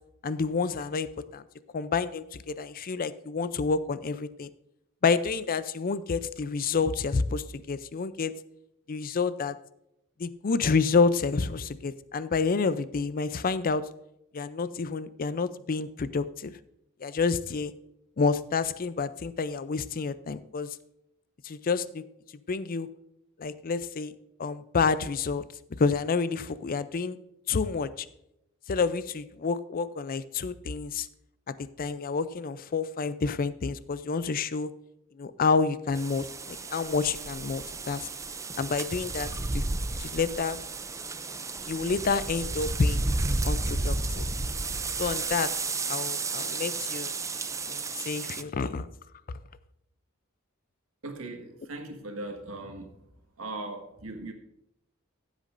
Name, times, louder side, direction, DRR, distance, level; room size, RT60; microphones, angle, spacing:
voice 1, 0.2-1.4 1.7-4.5 5.0-8.3 8.9-9.5 10.2-13.8 14.3-16.5 17.0-17.7 18.2-20.7 21.4-22.0 22.5-22.9 23.4-24.1 24.4-25.4 25.8-27.2 27.5-28.1 28.7-31.1 31.8-34.7 35.2-38.1 38.6-39.3 39.5-39.7 40.0-40.6 41.7-43.0 43.4-44.3 45.0-45.5 45.9-47.1 47.7-48.9 49.3-49.4, left 4 dB, 45° left, 15 dB, 0.5 m, -29 dB
sound 1, 35.9-48.4, right 3 dB, 15° right, 0.4 m, -32 dB
voice 2, 51.0-53.0 53.4-54.3, right 2 dB, 75° right, 3 dB, 1.7 m, -39 dB
15.0 x 8.3 x 2.6 m, 0.81 s
head